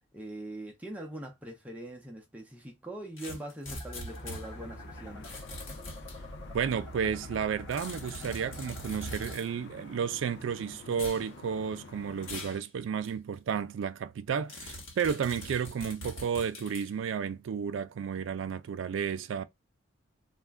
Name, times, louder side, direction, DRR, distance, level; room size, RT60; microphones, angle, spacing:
voice 1, 0.1-5.3, right 1 dB, 5° right, 0.5 m, -42 dB
sound 1, 3.2-4.4 5.2-6.2 7.7-9.5 10.9-11.2 12.2-12.6 13.0-13.1 14.5-16.9, left 1 dB, 75° left, 1.2 m, -43 dB
sound 2, 3.7-9.3, equal, 15° left, 1.1 m, -45 dB
sound 3, 4.1-12.6, left 4 dB, 55° left, 0.4 m, -49 dB
voice 2, 6.5-19.4, right 7 dB, 65° right, 0.3 m, -32 dB
2.3 x 2.1 x 3.3 m
head